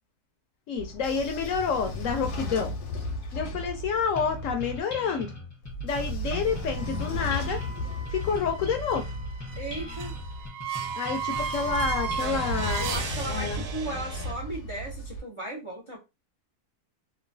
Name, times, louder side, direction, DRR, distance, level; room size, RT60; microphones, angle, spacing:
voice 1, 0.7-2.8 3.3-5.3 5.8-7.6 8.1-9.1 10.9-12.9 13.3-13.6, left 6 dB, 70° left, 0.8 m, -29 dB
Train / Sliding door, 0.8-4.8 5.6-10.5 11.3-15.2, left 1 dB, 85° left, 1.3 m, -35 dB
sound 1, 4.1-13.7, left 2 dB, 20° left, 0.5 m, -41 dB
sound 2, 6.6-14.3, right 6 dB, 75° right, 1.1 m, -36 dB
voice 2, 9.6-10.1 12.8-16.0, right 1 dB, 50° right, 0.3 m, -36 dB
2.9 x 2.3 x 2.6 m
omnidirectional pair, 1.6 m